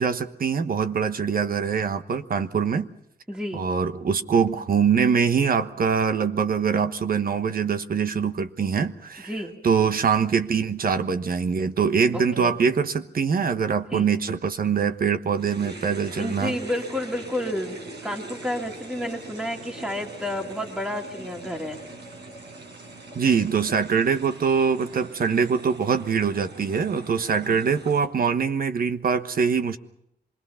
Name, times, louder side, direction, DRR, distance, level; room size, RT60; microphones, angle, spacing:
voice 1, 0.0-2.9 3.5-9.3 9.6-16.6 23.1-29.8, right 6 dB, 60° right, 10 dB, 1.2 m, -23 dB
voice 2, 3.3-3.6 9.3-9.5 12.1-12.6 13.9-14.1 16.2-17.8 18.0-21.8 27.4-27.6, left 1 dB, 5° right, 0 dB, 2.3 m, -30 dB
sound 1, 15.4-28.0, right 2 dB, 80° right, 4.9 m, -42 dB
26.0 x 21.5 x 5.7 m, 0.76 s
wide cardioid pair, 130°, 17 cm